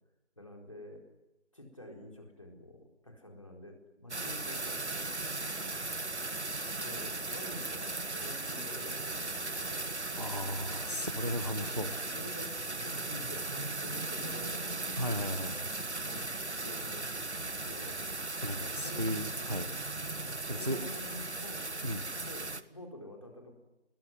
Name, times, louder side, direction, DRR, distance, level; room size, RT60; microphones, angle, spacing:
voice 1, 0.4-1.0 1.5-5.8 6.8-10.6 11.5-14.9 15.6-15.7 16.0-18.1 18.8-19.1 20.1-21.7 22.2-23.5, left 1 dB, 30° left, 1 dB, 4.3 m, -48 dB
sound 1, 4.1-22.6, right 2 dB, 70° right, 1.6 m, -37 dB
voice 2, 10.2-11.9 15.0-15.7 18.4-19.8 20.5-20.8 21.8-22.0, equal, 35° right, 12 dB, 1.1 m, -35 dB
28.0 x 21.5 x 9.5 m, 0.94 s
figure-of-eight pair, 180°, 35 cm